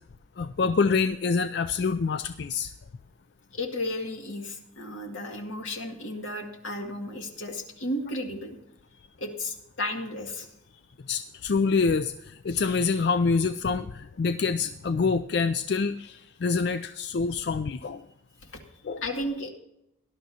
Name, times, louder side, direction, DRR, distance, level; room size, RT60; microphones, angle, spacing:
voice 1, 0.4-2.7 11.0-18.0 18.8-19.0, left 4 dB, 55° left, 11 dB, 0.4 m, -26 dB
voice 2, 3.5-8.6 9.2-10.5 18.4-18.6 19.0-19.5, left 1 dB, 85° left, 2 dB, 2.2 m, -33 dB
18.0 x 12.0 x 2.8 m, 0.83 s
head